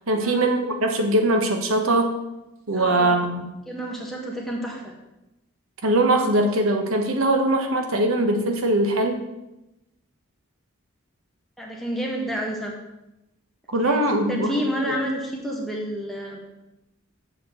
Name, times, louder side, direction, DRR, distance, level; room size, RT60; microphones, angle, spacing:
voice 1, 0.1-2.1 2.7-3.5 5.8-9.2 13.7-14.5, right 1 dB, 85° right, 4 dB, 1.1 m, -21 dB
voice 2, 2.7-3.2 3.7-4.9 11.6-12.7 13.8-16.4, equal, ahead, -2 dB, 1.3 m, -30 dB
7.5 x 4.4 x 6.7 m, 0.95 s
head